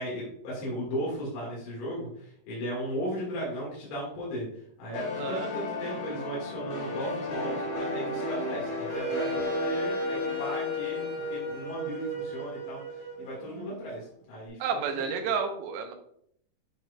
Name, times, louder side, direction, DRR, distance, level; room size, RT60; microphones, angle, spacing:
voice 1, 0.0-4.5 4.8-14.8 15.2-15.3, equal, 90° left, -5 dB, 4.3 m, -36 dB
sound 1, 4.9-12.4, left 2 dB, 60° left, 3.4 m, -34 dB
voice 2, 5.2-5.5 14.6-15.9, right 6 dB, 80° right, 5 dB, 2.8 m, -31 dB
Wind instrument woodwind instrument, 8.9-13.8, equal, 35° right, 2.3 m, -34 dB
10.5 x 4.2 x 2.3 m, 0.68 s
omnidirectional pair, 5.3 m